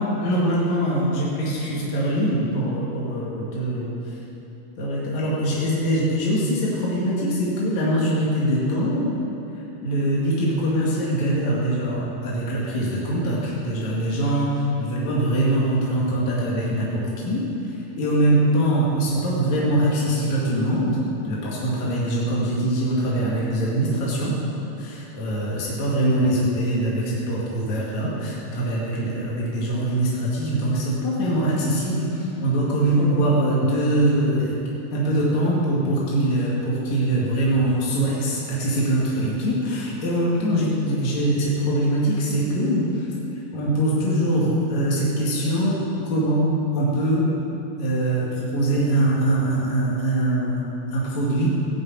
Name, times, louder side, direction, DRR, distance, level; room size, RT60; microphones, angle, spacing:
voice 1, 0.2-3.9 4.8-9.1 9.8-17.5 18.0-24.3 24.8-34.5 34.9-43.1 43.5-45.8 46.1-47.2 47.8-50.6 50.9-51.5, right 1 dB, 70° left, -6 dB, 3.5 m, -23 dB
16.5 x 7.0 x 8.6 m, 3.0 s
omnidirectional pair, 3.4 m